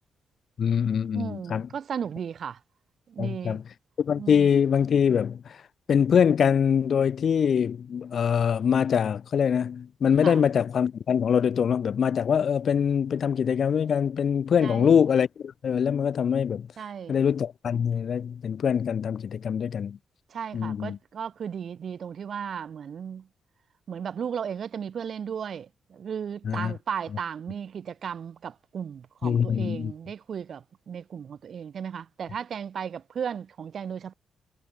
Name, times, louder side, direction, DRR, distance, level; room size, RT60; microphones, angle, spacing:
voice 1, 0.6-1.7 3.2-3.6 4.0-5.6 5.9-16.7 17.1-20.0 20.5-21.0 26.4-26.7 29.2-29.9, left 7 dB, 55° left, 1.4 m, -24 dB
voice 2, 1.1-2.6 3.1-3.6 4.2-4.5 10.2-10.4 14.6-15.0 16.8-17.2 20.3-23.3 23.9-34.1, right 7 dB, 55° right, 2.8 m, -35 dB
cardioid pair, 105°, 0 cm